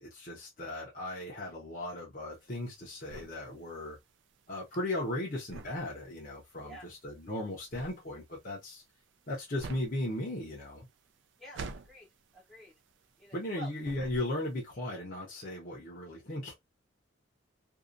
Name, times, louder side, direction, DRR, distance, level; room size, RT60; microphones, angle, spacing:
voice 1, 0.0-4.0 4.5-8.8 9.3-10.9 13.3-16.5, left 1 dB, 45° left, 0.8 m, -37 dB
sound 1, 2.3-13.5 13.8-14.6, right 3 dB, 70° right, 0.4 m, -48 dB
voice 2, 11.4-12.1 12.3-12.7 13.2-13.7, right 2 dB, ahead, 0.6 m, -49 dB
2.7 x 2.3 x 2.5 m
head